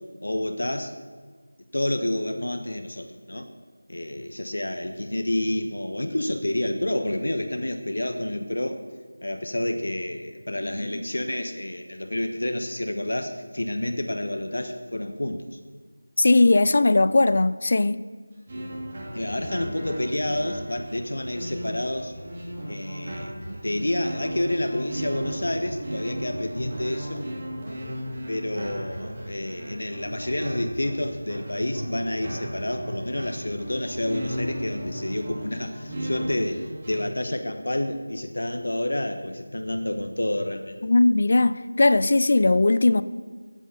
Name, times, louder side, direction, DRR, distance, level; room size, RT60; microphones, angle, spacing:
voice 1, 0.2-0.9 1.7-3.5 3.9-8.8 9.2-15.6 19.1-22.1 22.7-23.4 23.6-27.2 28.3-40.8, left 1 dB, 65° left, 1.2 m, -29 dB
voice 2, 16.2-18.0 40.8-43.0, left 2 dB, 45° left, 0.5 m, -19 dB
sound 1, 18.5-37.0, equal, 30° right, 3.5 m, -35 dB
13.0 x 9.1 x 6.7 m
figure-of-eight pair, 170°, 0 cm